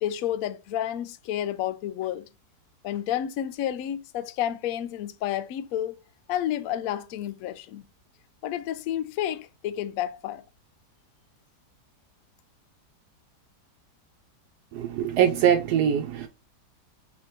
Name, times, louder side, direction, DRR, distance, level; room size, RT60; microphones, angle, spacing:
voice 1, 0.0-2.3 2.8-6.0 6.3-7.8 8.4-10.4, left 11 dB, 70° left, 0.9 m, -30 dB
voice 2, 14.7-16.3, right 9 dB, 75° right, 1.1 m, -23 dB
3.7 x 3.2 x 4.2 m
omnidirectional pair, 1.8 m